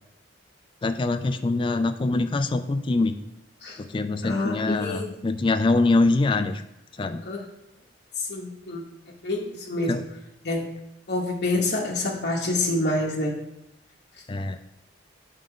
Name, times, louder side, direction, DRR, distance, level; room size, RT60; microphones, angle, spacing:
voice 1, 0.8-3.1 3.9-6.6 7.0-7.2 9.9-10.0 14.3-14.6, left 3 dB, 25° left, 8 dB, 0.3 m, -24 dB
voice 2, 4.2-5.1 7.2-7.5 8.2-8.8 9.2-9.9 10.4-10.7 11.1-13.4, left 2 dB, 55° left, -4 dB, 0.9 m, -27 dB
7.8 x 3.8 x 3.7 m, 0.86 s
head